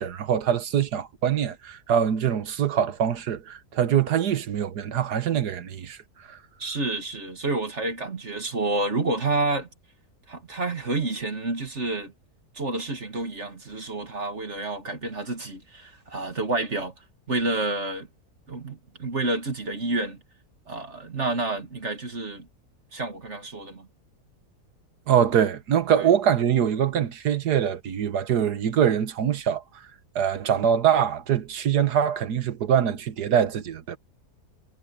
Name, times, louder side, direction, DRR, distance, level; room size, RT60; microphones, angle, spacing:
voice 1, 0.0-6.0 6.3-6.4 25.1-29.6 30.1-34.0, right 9 dB, 80° right, 1.7 m, -23 dB
voice 2, 6.6-9.7 10.3-12.1 12.6-16.9 17.3-18.1 18.5-20.2 20.7-22.5 22.9-23.9 26.0-26.1, right 2 dB, 45° right, 2.4 m, -29 dB
omnidirectional pair, 1.7 m